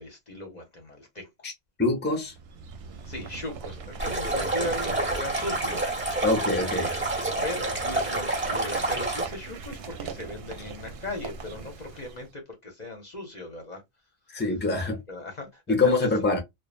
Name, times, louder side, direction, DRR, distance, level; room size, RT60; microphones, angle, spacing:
voice 1, 0.0-1.5 3.0-5.8 6.2-13.8 14.3-14.4 15.1-16.1, left 1 dB, 45° left, 0.8 m, -38 dB
voice 2, 1.8-2.3 6.2-6.9 14.3-15.0 15.7-16.4, left 3 dB, 10° left, 0.7 m, -24 dB
sound 1, 2.3-12.3, right 5 dB, 75° right, 0.8 m, -40 dB
Stream, 4.0-9.2, right 2 dB, 10° right, 1.0 m, -28 dB
3.1 x 2.1 x 2.3 m
omnidirectional pair, 1.1 m